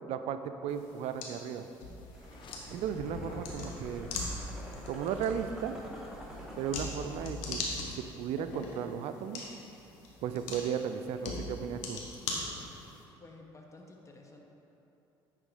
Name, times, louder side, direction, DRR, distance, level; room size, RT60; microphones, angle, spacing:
voice 1, 0.1-1.7 2.7-4.1 4.9-5.7 6.6-9.4 10.2-12.0, right 8 dB, 65° right, 9 dB, 0.4 m, -35 dB
sound 1, 0.7-13.0, left 3 dB, 80° left, 1.1 m, -41 dB
sound 2, 2.1-2.6 2.9-5.5, left 4 dB, 45° left, 0.7 m, -48 dB
sound 3, 2.1-7.3, equal, 5° right, 1.8 m, -47 dB
voice 2, 13.2-14.4, left 2 dB, 25° left, 1 dB, 1.1 m, -52 dB
9.5 x 3.7 x 4.9 m, 2.9 s
hypercardioid pair, 65°, 11 cm